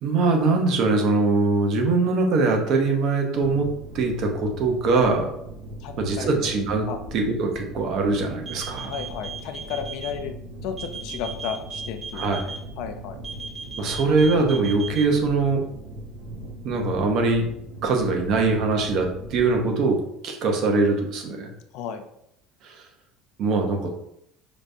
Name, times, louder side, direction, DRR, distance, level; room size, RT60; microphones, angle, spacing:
voice 1, 0.0-3.7 3.9-5.3 6.0-6.9 7.1-8.9 12.1-12.4 13.8-15.6 16.6-17.5 17.8-21.5 22.6-22.9 23.4-23.9, right 3 dB, 40° right, 3 dB, 0.6 m, -22 dB
sound 1, 3.3-19.7, right 1 dB, 70° right, 0.7 m, -39 dB
voice 2, 5.8-6.4 6.9-7.0 8.8-10.3 10.6-12.2 12.8-13.2 21.7-22.0, left 7 dB, 55° left, 6 dB, 0.4 m, -33 dB
sound 2, 8.4-10.1 10.8-12.6 13.2-15.0, right 5 dB, 20° right, 0.9 m, -35 dB
4.9 x 2.2 x 2.6 m, 0.77 s
cardioid pair, 180°, 0 cm